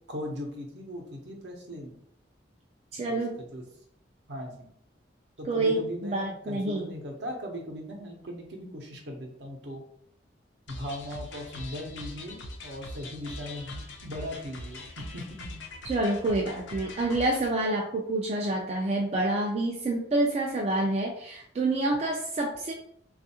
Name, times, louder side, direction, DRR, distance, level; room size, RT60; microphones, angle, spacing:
voice 1, 0.1-1.9 3.1-3.6 4.3-4.7 5.4-9.8 10.7-15.6, equal, 65° right, 1 dB, 0.7 m, -39 dB
voice 2, 2.9-3.4 5.4-6.9 15.8-22.7, right 2 dB, 35° right, -1 dB, 0.3 m, -28 dB
sound 1, 10.7-17.5, left 1 dB, 75° left, 0.5 m, -42 dB
3.4 x 2.4 x 2.7 m, 0.68 s
head